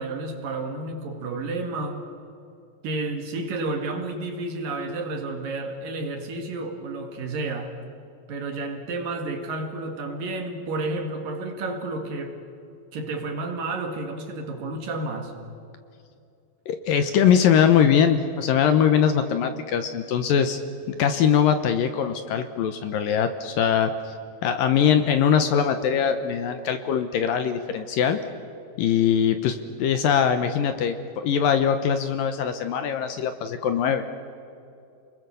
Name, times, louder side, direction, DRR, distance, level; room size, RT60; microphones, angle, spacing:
voice 1, 0.0-2.1 2.8-7.8 8.3-12.4 12.9-15.3, right 2 dB, 60° right, 5 dB, 3.5 m, -31 dB
voice 2, 16.7-20.6 20.9-24.1 24.4-28.2 28.8-34.1, left 8 dB, 70° left, 9 dB, 2.4 m, -22 dB
29.5 x 21.5 x 6.9 m, 2.6 s
omnidirectional pair, 4.7 m